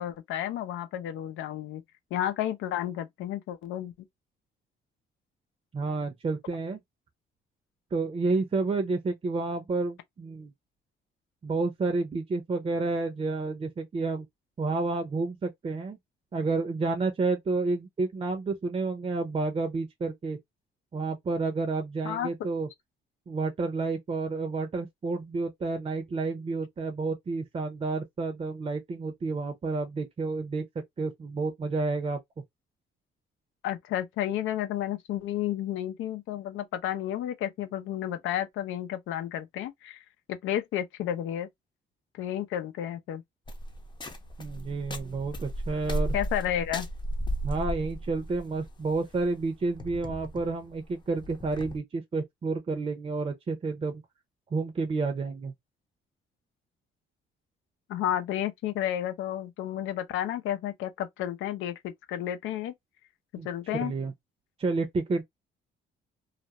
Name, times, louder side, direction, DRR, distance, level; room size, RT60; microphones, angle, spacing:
voice 1, 0.0-1.8 2.1-3.9 22.0-22.3 33.6-41.5 42.1-43.2 46.1-46.9 57.9-62.7 63.4-63.9, left 11 dB, 85° left, 0.6 m, -32 dB
voice 2, 5.7-6.8 7.9-10.5 11.4-14.3 14.6-16.0 16.3-20.4 20.9-22.7 23.3-30.6 31.0-32.2 44.4-46.1 47.4-54.0 54.5-55.5 63.4-63.5 63.7-64.1 64.6-65.2, right 3 dB, 30° right, 0.6 m, -30 dB
sound 1, 43.5-51.8, equal, 25° left, 0.6 m, -35 dB
2.4 x 2.1 x 2.8 m
cardioid pair, 90°, 20 cm